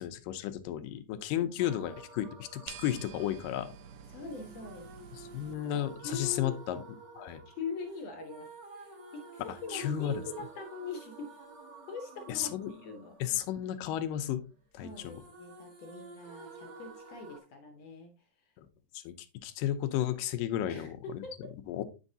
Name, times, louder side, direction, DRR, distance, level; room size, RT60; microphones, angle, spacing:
voice 1, 0.0-3.7 5.2-6.8 7.1-7.4 9.7-10.1 12.3-12.7 13.2-14.4 14.7-15.2 18.6-18.7 18.9-19.1 19.4-21.2 21.7-21.8, left 11 dB, 90° left, 9 dB, 2.4 m, -33 dB
acapella wordless layered singing, 1.6-14.5 14.8-17.4, right 4 dB, 45° right, 1.5 m, -51 dB
sound 1, 2.7-5.5, right 9 dB, 75° right, 1.7 m, -49 dB
voice 2, 4.1-4.9 5.7-6.6 7.5-11.4 11.9-13.3 14.8-18.5 20.7-21.5, left 4 dB, 70° left, 5 dB, 1.6 m, -43 dB
8.0 x 6.3 x 2.7 m, 0.30 s
omnidirectional pair, 3.8 m